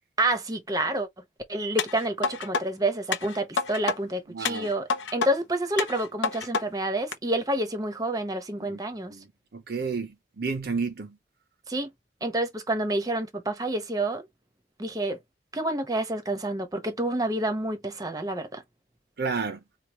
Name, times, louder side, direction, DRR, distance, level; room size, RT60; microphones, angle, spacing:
voice 1, 0.2-1.1 1.5-9.1 11.7-11.9 12.2-14.3 14.8-15.2 15.5-18.6, right 1 dB, 20° right, 0.8 m, -28 dB
sound 1, 1.8-2.6 3.1-4.0 4.4-5.3 5.8-6.6 7.1-7.2, left 5 dB, 80° left, 0.7 m, -28 dB
voice 2, 4.3-4.7 8.7-8.8 9.1-9.2 9.5-11.1 19.2-19.6, right 4 dB, 55° right, 0.6 m, -31 dB
4.6 x 2.3 x 2.9 m
head